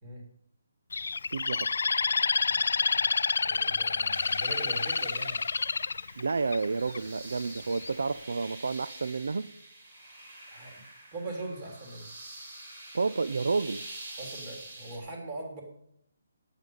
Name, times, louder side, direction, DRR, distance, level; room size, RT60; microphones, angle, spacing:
Bird, 0.9-7.0 7.5-7.9, left 4 dB, 70° left, 0.3 m, -28 dB
voice 1, 1.3-1.9 6.2-9.5 12.9-13.8, right 4 dB, 80° right, 15 dB, 0.4 m, -30 dB
voice 2, 3.4-5.4 10.5-10.8 11.1-12.1 14.2-15.6, right 2 dB, 20° right, 0 dB, 3.2 m, -40 dB
sound 1, 4.1-15.0, right 2 dB, 40° right, 3.7 m, -46 dB
11.5 x 9.1 x 5.5 m, 0.70 s
hypercardioid pair, 170°, 0 cm